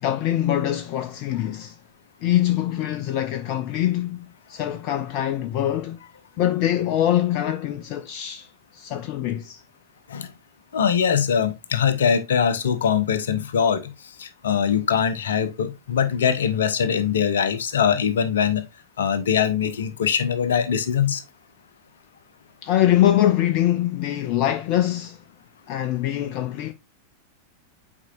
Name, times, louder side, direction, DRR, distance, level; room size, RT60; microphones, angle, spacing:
voice 1, 0.0-1.8 2.2-6.0 6.4-9.6 22.6-25.2 25.7-26.7, left 12 dB, 40° left, 0.5 m, -23 dB
voice 2, 10.7-13.9 14.2-18.6 19.0-21.2, left 7 dB, 65° left, 0.8 m, -22 dB
8.4 x 4.5 x 2.5 m
figure-of-eight pair, 90°, 0 cm